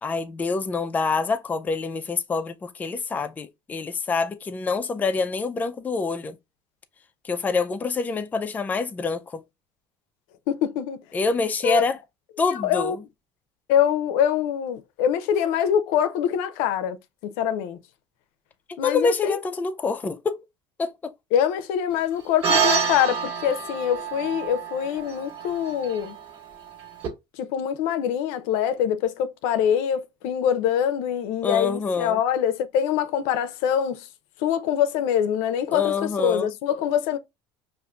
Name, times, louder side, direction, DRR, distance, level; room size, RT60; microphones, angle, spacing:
voice 1, 0.0-6.4 7.2-9.4 11.1-12.0 12.4-13.0 18.8-20.4 20.8-21.1 31.4-32.2 35.7-36.5, left 4 dB, 15° left, 0.3 m, -26 dB
voice 2, 10.5-11.0 11.6-11.8 12.6-13.0 13.7-17.0 17.2-17.8 18.8-19.4 21.3-26.2 27.4-34.1 34.4-37.2, left 9 dB, 80° left, 0.5 m, -24 dB
sound 1, 22.4-27.1, right 6 dB, 45° right, 1.4 m, -27 dB
4.9 x 2.5 x 2.3 m
cardioid pair, 130°, 11 cm